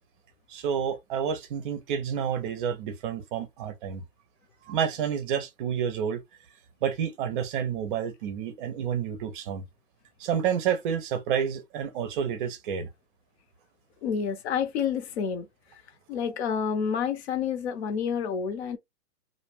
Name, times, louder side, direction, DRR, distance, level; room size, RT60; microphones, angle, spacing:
voice 1, 0.5-4.0 4.7-6.2 6.8-9.6 10.2-12.9, right 8 dB, 35° right, 0.6 m, -29 dB
voice 2, 14.0-15.5 16.1-18.8, left 7 dB, 45° left, 0.8 m, -29 dB
2.5 x 2.1 x 3.2 m
hypercardioid pair, 125°, 47 cm